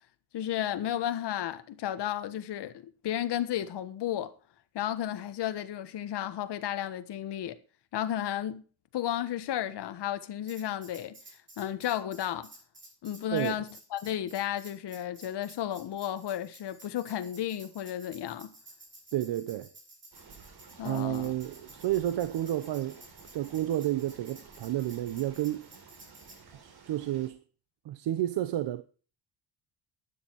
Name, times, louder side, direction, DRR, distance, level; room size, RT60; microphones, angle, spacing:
voice 1, 0.3-4.3 4.7-7.6 7.9-8.6 8.9-11.2 11.6-12.5 13.0-18.5 20.8-21.3, left 11 dB, 70° left, 1.5 m, -33 dB
Tambourine, 10.5-26.4, right 2 dB, 25° right, 7.1 m, -53 dB
voice 2, 19.1-19.7 20.8-23.0 23.3-25.7 26.6-27.4 27.8-28.8, right 13 dB, 75° right, 0.9 m, -31 dB
sound 1, 20.1-27.3, right 5 dB, 60° right, 4.1 m, -54 dB
12.5 x 9.8 x 4.7 m
cardioid pair, 135°, 42 cm